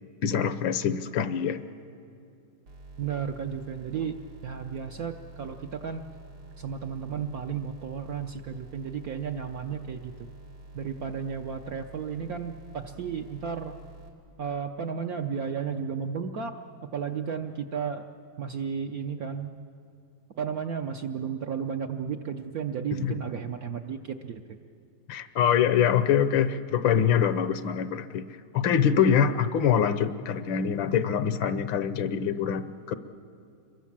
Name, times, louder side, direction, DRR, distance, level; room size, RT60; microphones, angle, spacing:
voice 1, 0.2-1.7 23.0-23.2 25.1-28.2 28.5-32.9, left 8 dB, 70° left, 13 dB, 1.5 m, -24 dB
sound 1, 2.7-14.1, right 2 dB, 85° right, 3.4 m, -48 dB
voice 2, 3.0-6.1 6.6-10.1 10.7-13.8 14.4-16.5 16.9-18.1 18.4-19.6 20.4-24.4, right 7 dB, 65° right, 5 dB, 1.0 m, -33 dB
27.0 x 22.5 x 7.4 m, 2.4 s
omnidirectional pair, 2.3 m